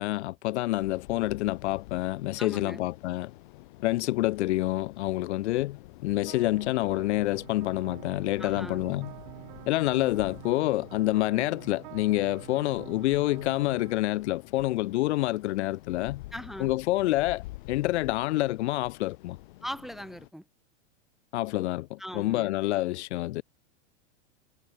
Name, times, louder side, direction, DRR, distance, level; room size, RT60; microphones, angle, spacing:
voice 1, 0.0-3.3 3.8-9.1 9.7-16.2 16.6-19.4 21.3-23.4, left 17 dB, 70° left, 0.5 m, -27 dB
sound 1, 0.8-20.3, left 20 dB, 45° left, 1.6 m, -48 dB
voice 2, 2.4-2.8 8.4-8.8 16.3-16.7 19.6-20.4 22.0-22.5, equal, ahead, 0.6 m, -39 dB
sound 2, 6.3-14.0, right 23 dB, 40° right, 2.2 m, -47 dB
supercardioid pair, 180°, 35 cm